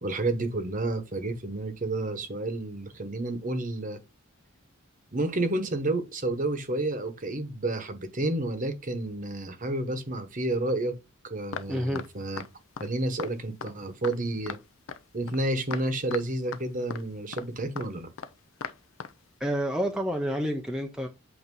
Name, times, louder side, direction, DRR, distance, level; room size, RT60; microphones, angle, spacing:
voice 1, 0.0-4.0 5.1-11.0 11.2-12.4 12.8-14.6 15.1-18.1, right 2 dB, 40° right, 1.1 m, -30 dB
sound 1, 11.5-11.7 11.9-12.1 12.4-12.5 12.8-12.9 13.2-13.3 13.6-13.7 14.0-14.1 14.5-14.6 14.9-15.0 15.3-15.4 15.7-15.8 16.1-16.2 16.5-16.6 16.9-17.0 17.3-17.4 17.8-17.9 18.2-18.3 18.6-18.7 19.0-19.1, left 6 dB, 65° left, 0.5 m, -37 dB
voice 2, 11.7-12.0 19.4-21.1, equal, 5° right, 0.6 m, -29 dB
8.2 x 2.9 x 5.3 m
head